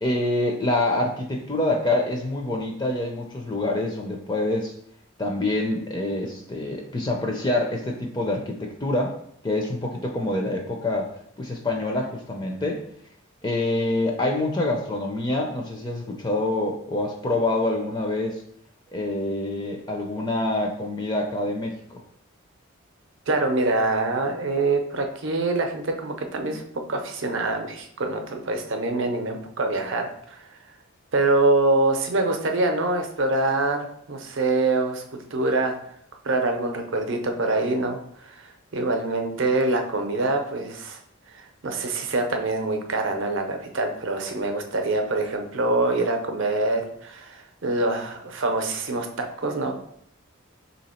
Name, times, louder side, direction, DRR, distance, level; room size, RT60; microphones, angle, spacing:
voice 1, 0.0-4.7 5.2-9.2 9.4-11.1 11.4-12.8 13.4-18.4 18.9-22.0, left 2 dB, 20° left, 1 dB, 0.4 m, -26 dB
voice 2, 23.3-30.6 31.1-35.7 36.2-41.0 41.3-49.8, right 2 dB, 60° right, 5 dB, 0.6 m, -25 dB
3.5 x 2.8 x 4.2 m, 0.67 s
head